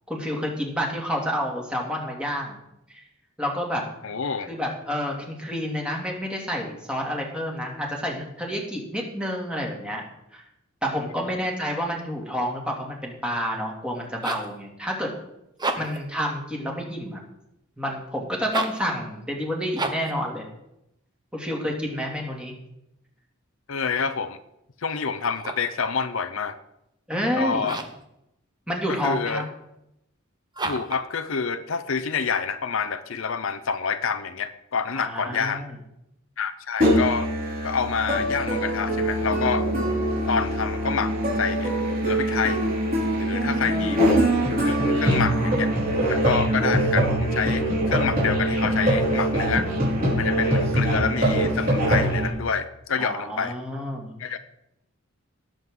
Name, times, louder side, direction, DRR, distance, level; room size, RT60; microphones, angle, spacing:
voice 1, 0.1-2.6 2.9-3.0 3.4-3.8 4.5-10.0 10.3-10.4 10.8-15.1 15.8-17.2 17.8-20.5 21.3-22.5 27.1-27.7 28.7-29.4 35.0-35.7 43.6-44.0 53.0-54.1, equal, 5° right, -1 dB, 2.5 m, -29 dB
voice 2, 4.0-4.5 11.3-11.4 15.8-15.9 23.7-24.4 24.8-26.6 27.3-27.8 28.9-29.4 30.6-35.6 36.4-37.3 37.6-39.7 40.3-41.7 42.0-42.6 43.2-44.4 44.6-45.7 46.1-49.7 50.2-53.6 54.2-54.4, left 6 dB, 70° left, 11 dB, 0.7 m, -28 dB
sound 1, 13.9-14.6 15.5-16.1 18.4-18.9 19.7-20.2 25.2-25.8 27.6-28.1 30.5-31.1, right 2 dB, 20° right, 1.1 m, -31 dB
Musical instrument, 36.8-52.3, right 1 dB, 45° right, 5.0 m, -23 dB
18.5 x 7.6 x 3.8 m, 0.83 s
head